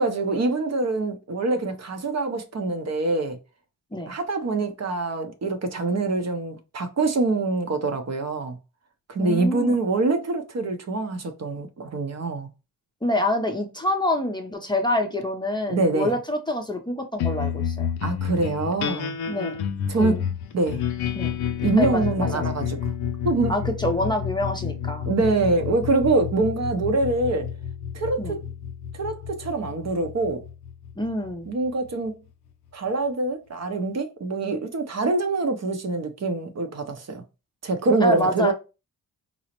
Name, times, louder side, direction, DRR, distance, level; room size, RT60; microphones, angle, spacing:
voice 1, 0.0-3.4 4.1-8.6 9.1-12.5 15.7-16.1 18.0-19.2 19.9-20.2 20.5-20.8 21.6-22.9 23.2-23.5 25.1-27.5 27.9-28.4 29.0-30.4 31.5-32.2 32.7-37.2 37.6-38.5, right 3 dB, 45° right, 0.6 m, -25 dB
voice 2, 9.2-9.7 13.0-17.9 19.3-19.6 20.0-20.2 21.1-21.3 21.8-22.4 23.5-25.1 28.2-28.4 31.0-31.5 38.0-38.5, left 1 dB, 10° left, 0.6 m, -26 dB
sound 1, 17.2-31.9, left 8 dB, 75° left, 0.5 m, -30 dB
3.9 x 2.0 x 2.9 m
cardioid pair, 75°, 38 cm